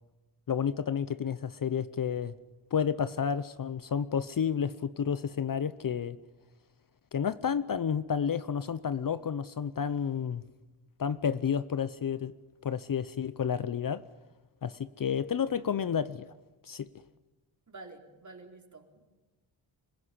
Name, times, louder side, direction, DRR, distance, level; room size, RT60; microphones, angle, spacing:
voice 1, 0.5-2.3 2.7-6.2 7.1-10.4 11.0-12.3 12.6-14.0 14.6-16.3 16.6-16.9, left 7 dB, 45° left, 0.8 m, -31 dB
voice 2, 17.7-19.0, right 3 dB, 35° right, 4.1 m, -49 dB
26.0 x 16.0 x 9.9 m
cardioid pair, 75°, 47 cm